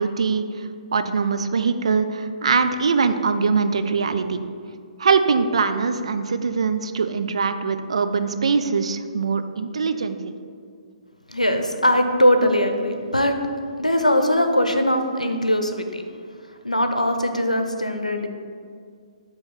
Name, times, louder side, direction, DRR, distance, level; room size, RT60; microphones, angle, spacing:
voice 1, 0.0-4.4 5.0-10.3, right 5 dB, 55° right, 9 dB, 0.4 m, -22 dB
voice 2, 11.3-13.3 13.8-16.0 16.6-18.3, equal, 85° left, 6 dB, 0.6 m, -20 dB
7.5 x 3.1 x 5.6 m, 2.1 s
figure-of-eight pair, 130°, 4 cm